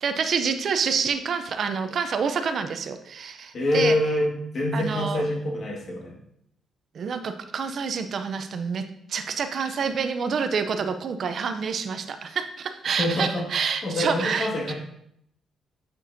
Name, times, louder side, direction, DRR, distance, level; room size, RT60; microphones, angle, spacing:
voice 1, 0.0-4.0 4.7-5.2 6.9-8.8 9.1-14.7, right 6 dB, 50° right, 8 dB, 0.5 m, -27 dB
voice 2, 3.5-6.1 13.0-13.5 13.8-14.7, left 1 dB, 45° left, 0 dB, 1.7 m, -25 dB
9.1 x 6.0 x 2.6 m, 0.73 s
cardioid pair, 130°, 0 cm